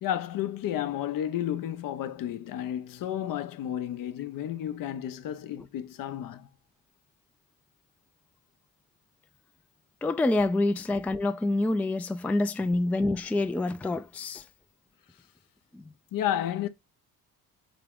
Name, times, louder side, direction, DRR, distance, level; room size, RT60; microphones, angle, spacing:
voice 1, 0.0-6.5 12.6-12.7 16.1-16.7, left 11 dB, 65° left, 0.6 m, -32 dB
voice 2, 10.0-14.4 15.7-15.9, left 2 dB, 5° left, 0.3 m, -27 dB
3.7 x 3.6 x 3.5 m
supercardioid pair, 75°, 36 cm